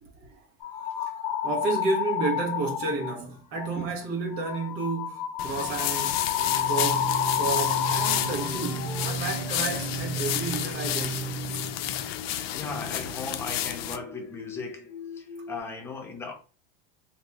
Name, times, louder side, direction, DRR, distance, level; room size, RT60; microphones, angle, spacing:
sound 1, 0.6-3.2 3.6-3.9 4.3-14.6 14.9-15.6, left 9 dB, 50° left, 0.8 m, -32 dB
voice 1, 1.4-6.2 6.7-11.3 11.5-11.6, right 3 dB, 40° right, 1.1 m, -31 dB
sound 2, 5.4-14.0, left 11 dB, 80° left, 0.5 m, -31 dB
sound 3, 6.4-12.1, right 6 dB, 65° right, 0.8 m, -35 dB
voice 2, 12.5-16.3, left 4 dB, 10° left, 0.3 m, -37 dB
4.0 x 2.7 x 2.2 m
supercardioid pair, 160°, 29 cm